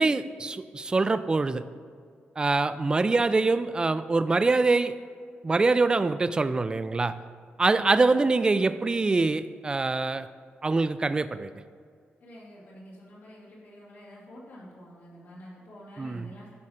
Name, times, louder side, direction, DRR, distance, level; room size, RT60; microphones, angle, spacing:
voice 1, 0.0-1.6 2.4-4.9 5.4-7.2 7.6-10.3 10.6-11.5 16.0-16.3, right 3 dB, 20° right, 13 dB, 0.3 m, -24 dB
voice 2, 12.2-16.5, equal, 80° left, -7 dB, 2.3 m, -48 dB
11.5 x 4.2 x 5.0 m, 2.1 s
cardioid pair, 110°, 4 cm